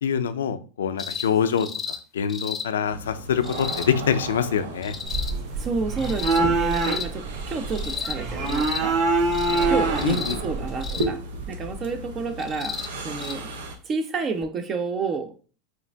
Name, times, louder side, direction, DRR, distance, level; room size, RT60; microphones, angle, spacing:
voice 1, 0.0-4.9 10.0-10.4, left 8 dB, 90° left, 11 dB, 0.5 m, -25 dB
sound 1, 1.0-1.3 1.6-2.0 2.3-2.7 3.4-3.9 4.8-5.3 6.0-6.4 6.7-7.1 7.7-8.2 8.5-8.8 9.3-9.7 10.0-10.4 10.8-11.1 12.4-12.9 13.2-13.3 14.4-14.5, left 6 dB, 25° left, 0.6 m, -33 dB
sound 2, 2.8-13.8, right 1 dB, 85° right, 0.8 m, -35 dB
sound 3, 5.1-11.0, right 3 dB, 60° right, 1.4 m, -25 dB
voice 2, 5.6-9.0 9.5-12.8 13.0-13.5 13.8-15.4, right 4 dB, 35° right, 8 dB, 0.6 m, -30 dB
4.6 x 2.5 x 3.4 m, 0.38 s
hypercardioid pair, 115°, 0 cm